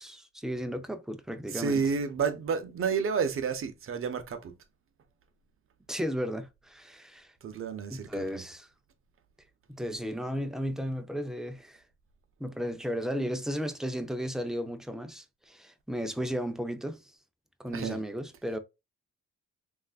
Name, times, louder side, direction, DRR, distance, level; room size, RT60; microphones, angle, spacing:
voice 1, 0.0-1.9 5.9-7.3 7.9-8.7 9.7-11.8 12.4-17.0 17.6-18.6, equal, ahead, 0.5 m, -34 dB
voice 2, 1.5-4.5 7.4-8.4 17.7-18.0, right 6 dB, 45° right, 0.7 m, -30 dB
3.3 x 2.5 x 2.3 m
cardioid pair, 90°, 30 cm